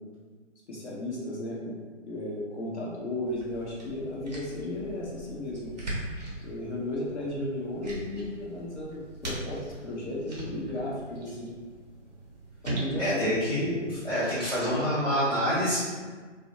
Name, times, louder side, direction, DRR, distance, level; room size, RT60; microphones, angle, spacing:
voice 1, 0.7-1.8 2.1-5.7 6.4-11.5 12.6-13.9, left 1 dB, 65° left, -5 dB, 0.7 m, -34 dB
sound 1, 3.3-14.5, right 1 dB, 35° right, 0.6 m, -40 dB
voice 2, 13.0-13.8 14.0-15.8, equal, 20° left, -15 dB, 0.6 m, -26 dB
2.5 x 2.1 x 2.7 m, 1.4 s
figure-of-eight pair, 145°, 37 cm